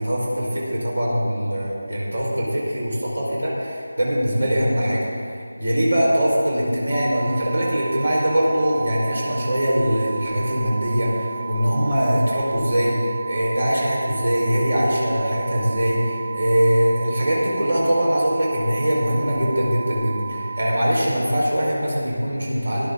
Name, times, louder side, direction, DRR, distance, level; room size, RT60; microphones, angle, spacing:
voice 1, 0.0-5.1 5.6-22.9, equal, 70° right, -4 dB, 4.1 m, -22 dB
sound 1, 6.9-20.8, right 5 dB, 25° right, 0.7 m, -33 dB
18.5 x 11.5 x 3.7 m, 2.3 s
figure-of-eight pair, 170°, 0 cm